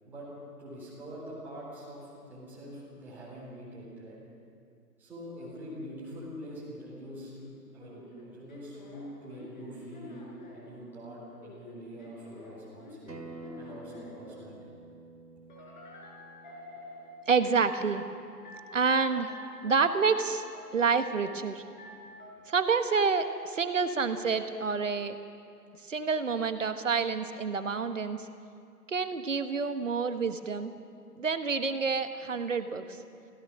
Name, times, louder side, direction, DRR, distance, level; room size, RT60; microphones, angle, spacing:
voice 1, 0.6-4.2 5.0-10.3 10.5-13.2 13.6-14.6, equal, 5° right, -9 dB, 3.6 m, -44 dB
sound 1, 7.8-10.7 11.3-14.2 15.5-17.1 17.6-18.1 18.4-19.0 19.3-19.8 20.1-20.6 20.9-21.4 21.8-22.3, left 1 dB, 30° left, 4.5 m, -49 dB
Acoustic guitar, 13.1-18.3, right 2 dB, 75° right, 2.3 m, -49 dB
voice 2, 17.3-18.0 18.7-19.3 19.6-20.4 20.7-21.6 22.5-25.2 25.9-28.3 28.9-30.7 31.2-32.8, right 5 dB, 50° right, 10 dB, 1.2 m, -28 dB
25.0 x 16.5 x 6.3 m, 2.4 s
figure-of-eight pair, 160°, 49 cm